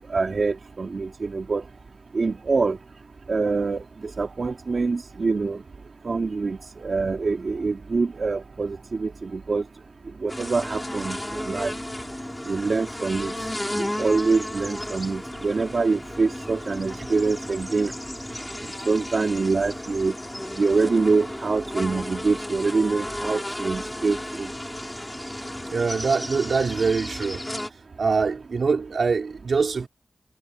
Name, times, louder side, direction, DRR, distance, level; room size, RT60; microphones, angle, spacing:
voice 1, 0.1-1.7 2.1-2.8 3.3-3.8 4.2-5.6 6.0-9.6 10.2-11.7 12.5-13.3 13.8-17.9 18.9-20.1 20.6-24.5, right 4 dB, 65° right, 3.8 m, -25 dB
sound 1, 10.3-27.7, left 1 dB, 15° left, 4.9 m, -34 dB
voice 2, 25.7-27.4 28.0-29.9, right 4 dB, 80° right, 5.2 m, -24 dB
wide cardioid pair, 85°, 0 cm